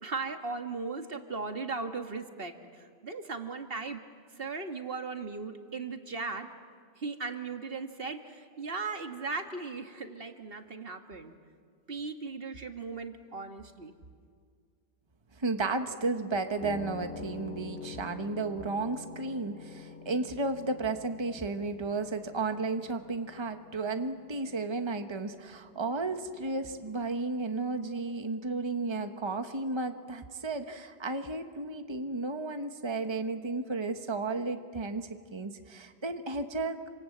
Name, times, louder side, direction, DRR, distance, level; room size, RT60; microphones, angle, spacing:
voice 1, 0.0-4.0 4.4-6.5 7.0-11.3 11.9-13.9, right 4 dB, 60° right, 6 dB, 1.8 m, -37 dB
voice 2, 15.4-36.8, right 3 dB, 25° right, 7 dB, 1.3 m, -33 dB
sound 1, 16.6-26.8, left 5 dB, 10° left, 2.9 m, -47 dB
28.0 x 26.0 x 7.9 m, 2.1 s
omnidirectional pair, 1.1 m